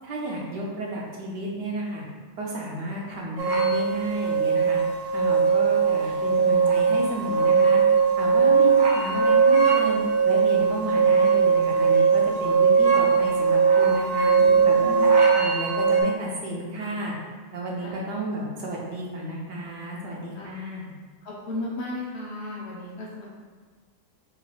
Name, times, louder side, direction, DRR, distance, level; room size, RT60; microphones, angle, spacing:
voice 1, 0.0-2.0 2.4-4.8 5.1-7.8 8.2-10.0 10.2-14.3 14.6-17.1 17.5-20.9, right 1 dB, 70° right, -3 dB, 1.4 m, -32 dB
sound 1, 3.4-16.0, right 5 dB, 90° right, 1.4 m, -20 dB
voice 2, 14.4-15.4 17.8-18.1 20.4-20.6 21.2-23.3, left 2 dB, 55° left, -4 dB, 0.7 m, -35 dB
3.7 x 3.0 x 4.3 m, 1.5 s
omnidirectional pair, 2.0 m